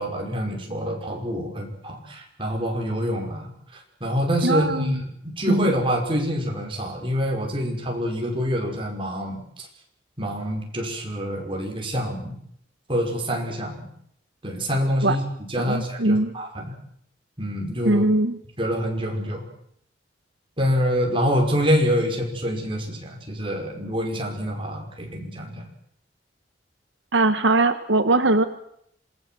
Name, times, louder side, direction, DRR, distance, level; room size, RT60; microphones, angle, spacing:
voice 1, 0.0-9.7 10.2-12.3 12.9-13.9 14.4-15.2 15.5-16.7 17.4-18.0 18.6-19.4 20.6-25.7, equal, 30° right, 1 dB, 5.5 m, -26 dB
voice 2, 4.4-5.0 5.5-5.7 15.0-15.2 15.6-16.3 17.8-18.4 27.1-28.4, right 2 dB, 80° right, 9 dB, 1.3 m, -21 dB
26.5 x 18.0 x 7.8 m, 0.70 s
head